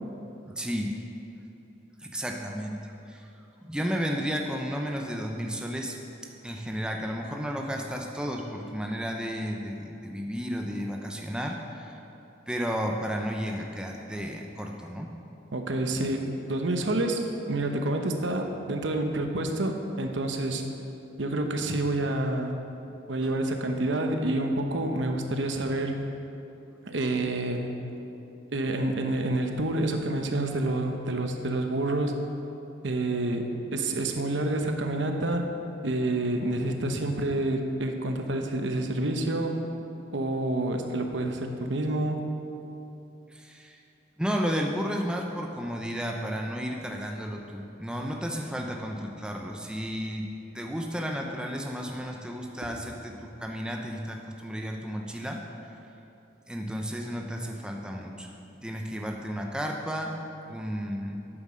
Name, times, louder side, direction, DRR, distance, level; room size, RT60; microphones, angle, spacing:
voice 1, 0.5-1.0 2.0-3.3 3.6-12.0 12.5-15.1 23.2-23.4 43.3-43.8 44.2-50.3 50.5-55.4 55.7-55.8 56.5-58.3 58.6-61.2, equal, 5° right, 1 dB, 0.6 m, -33 dB
voice 2, 15.5-20.7 21.2-22.6 23.1-26.0 26.9-27.7 28.5-32.2 32.8-35.5 35.8-39.6 40.1-42.3 52.6-52.7, right 1 dB, 70° right, 4 dB, 0.9 m, -28 dB
9.0 x 8.0 x 6.3 m, 2.9 s
head